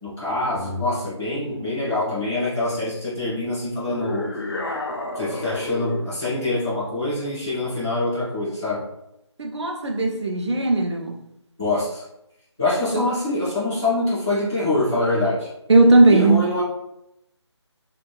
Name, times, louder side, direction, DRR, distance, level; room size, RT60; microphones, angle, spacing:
voice 1, 0.0-4.3 5.1-8.8 11.6-12.0 12.6-15.5 16.1-16.6, left 2 dB, 5° right, 0.5 m, -25 dB
sound 1, 3.9-6.2, left 2 dB, 55° left, 0.4 m, -30 dB
voice 2, 9.4-11.2 12.9-13.1 15.7-16.5, right 2 dB, 70° right, 0.5 m, -17 dB
2.3 x 2.2 x 3.3 m
figure-of-eight pair, 175°, 15 cm